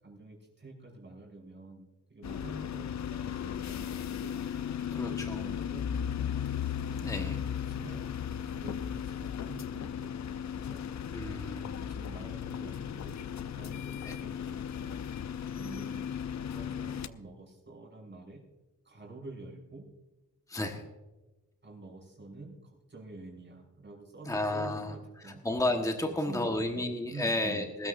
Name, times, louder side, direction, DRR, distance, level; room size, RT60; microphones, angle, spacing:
voice 1, 0.0-4.4 4.8-10.8 11.5-13.2 13.5-14.9 15.5-16.0 16.4-18.4 18.8-19.9 20.7-20.9 21.6-25.4 26.0-27.7, right 2 dB, 30° right, -1 dB, 5.4 m, -48 dB
sound 1, 2.2-17.1, left 8 dB, 50° left, 0.6 m, -36 dB
voice 2, 4.9-5.4 7.0-7.4 11.1-11.7 14.0-14.2 20.5-20.8 24.3-24.9 25.2-27.9, left 1 dB, 10° left, 3 dB, 1.3 m, -32 dB
21.0 x 13.0 x 2.6 m, 1.1 s
wide cardioid pair, 110°, 35 cm